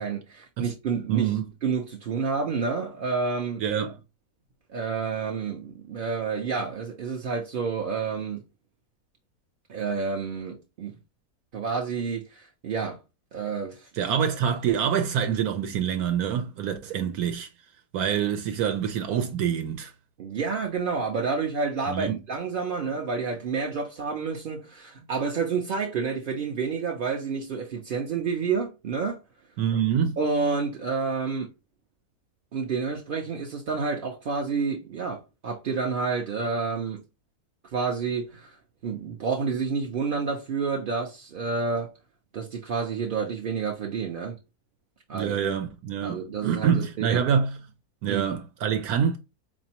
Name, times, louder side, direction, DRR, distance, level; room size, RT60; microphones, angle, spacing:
voice 1, 0.0-3.6 4.7-8.4 9.7-10.9 11.5-13.0 13.3-14.1 20.2-29.2 30.2-31.5 32.5-37.0 37.7-38.6 38.8-41.9 42.3-44.4 45.1-45.4 46.0-47.2 48.1-48.4, right 5 dB, 60° right, 0.5 m, -29 dB
voice 2, 1.1-1.5 3.6-3.9 14.0-17.5 17.9-19.9 21.9-22.2 29.6-30.2 45.1-47.6 48.0-49.2, right 8 dB, 75° right, 1.0 m, -26 dB
4.1 x 2.6 x 2.8 m
omnidirectional pair, 1.6 m